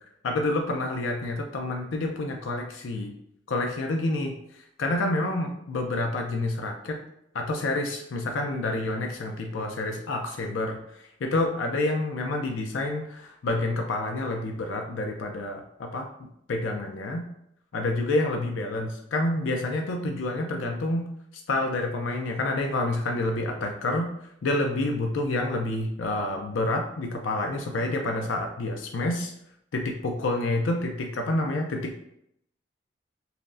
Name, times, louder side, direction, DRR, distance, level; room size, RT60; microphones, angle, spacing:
voice 1, 0.2-3.1 3.5-7.0 7.3-16.1 16.5-17.2 17.7-21.1 21.5-24.1 24.4-29.3 29.7-32.0, left 2 dB, 85° left, 3 dB, 0.4 m, -28 dB
5.5 x 2.0 x 2.5 m, 0.76 s
head